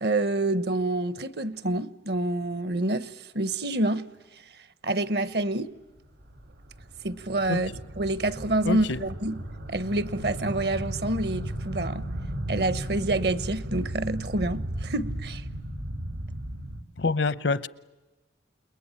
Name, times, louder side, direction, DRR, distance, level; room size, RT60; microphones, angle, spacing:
voice 1, 0.0-4.1 4.8-5.7 7.0-7.7 8.0-9.4 9.7-12.1 12.5-15.4, right 2 dB, 60° right, 1.0 m, -27 dB
sound 1, 6.0-16.8, right 1 dB, 90° right, 2.2 m, -35 dB
voice 2, 8.6-9.0 17.0-17.7, left 3 dB, 75° left, 0.8 m, -26 dB
29.0 x 21.0 x 8.9 m
head